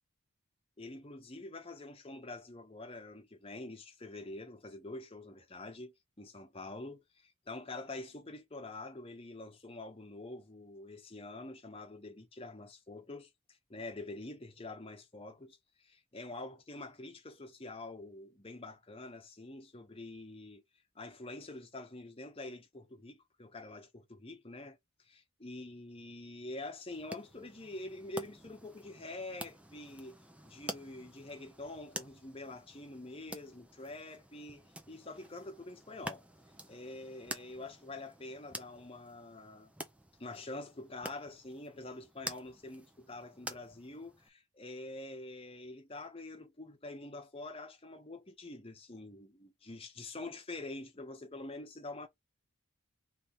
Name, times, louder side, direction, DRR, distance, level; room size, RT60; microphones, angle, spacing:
voice 1, 0.8-13.3 13.7-20.6 20.9-30.2 30.4-36.2 36.7-39.7 40.2-52.1, left 2 dB, 25° left, 0.9 m, -46 dB
sound 1, 26.9-44.3, right 1 dB, 5° right, 0.5 m, -49 dB
3.3 x 3.3 x 4.0 m
head